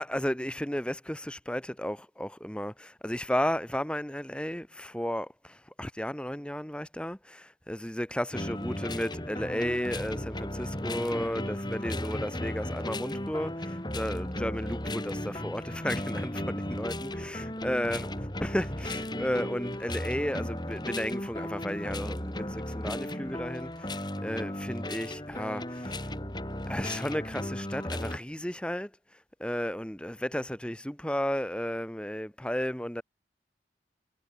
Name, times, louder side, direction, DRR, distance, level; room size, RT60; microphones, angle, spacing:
voice 1, 0.0-18.1 18.4-26.1 26.7-33.0, equal, 5° left, 1.3 m, -33 dB
sound 1, 8.3-28.2, left 1 dB, 25° left, 5.4 m, -35 dB
head